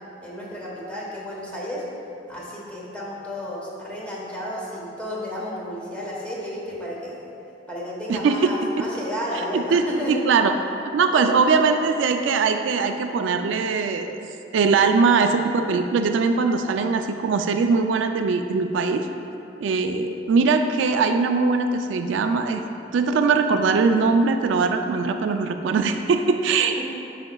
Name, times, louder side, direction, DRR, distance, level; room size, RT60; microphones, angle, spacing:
voice 1, 0.2-1.8 2.3-7.2 7.7-10.2 11.1-11.4 26.8-26.9, equal, 5° left, -5 dB, 1.1 m, -32 dB
voice 2, 8.1-8.5 8.8-8.9 9.5-10.5 10.9-14.2 14.5-19.1 19.6-22.6 22.9-26.8, right 4 dB, 80° right, 6 dB, 0.3 m, -21 dB
8.6 x 5.0 x 2.3 m, 2.8 s
head